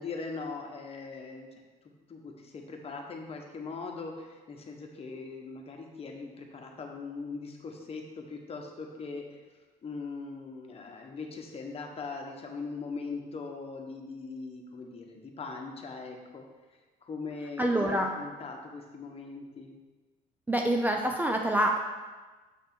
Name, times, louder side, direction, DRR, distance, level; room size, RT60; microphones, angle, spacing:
voice 1, 0.0-1.5 2.1-9.4 9.8-16.4 17.0-19.7, left 4 dB, 35° left, 2 dB, 1.1 m, -40 dB
voice 2, 17.6-18.1 20.5-21.8, right 1 dB, 10° right, 2 dB, 0.5 m, -26 dB
7.3 x 3.4 x 6.0 m, 1.3 s
cardioid pair, 110°, 17 cm